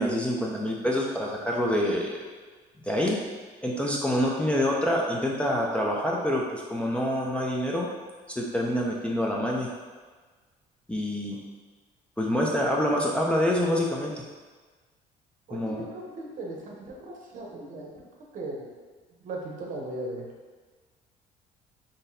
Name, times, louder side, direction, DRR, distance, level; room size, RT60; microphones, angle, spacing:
voice 1, 0.0-2.2 2.8-3.2 3.6-7.9 8.3-9.7 10.9-11.4 12.2-14.1 15.5-15.8, equal, 5° left, -3 dB, 0.4 m, -26 dB
voice 2, 15.5-18.0 18.3-18.7 19.2-20.3, right 2 dB, 55° right, -1 dB, 0.8 m, -37 dB
3.8 x 2.5 x 2.6 m, 1.4 s
cardioid pair, 105°, 16 cm